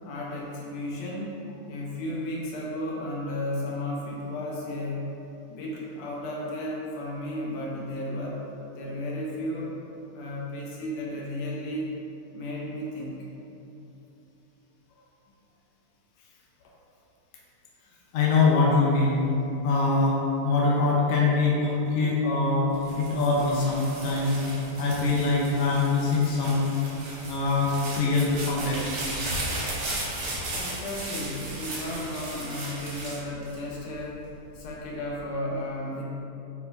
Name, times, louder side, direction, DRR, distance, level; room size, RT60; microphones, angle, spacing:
voice 1, 0.0-1.4 1.7-5.1 5.5-8.4 8.7-9.8 10.1-11.9 12.3-13.3 30.5-36.0, left 1 dB, 65° left, -4 dB, 1.7 m, -34 dB
voice 2, 18.1-19.2 19.6-22.7 23.0-26.7 27.3-28.9, left 3 dB, 80° left, -4 dB, 1.3 m, -23 dB
sound 1, 22.7-34.1 34.6-35.2, right 1 dB, 70° right, 2.8 m, -36 dB
8.1 x 4.9 x 2.6 m, 2.9 s
omnidirectional pair, 3.9 m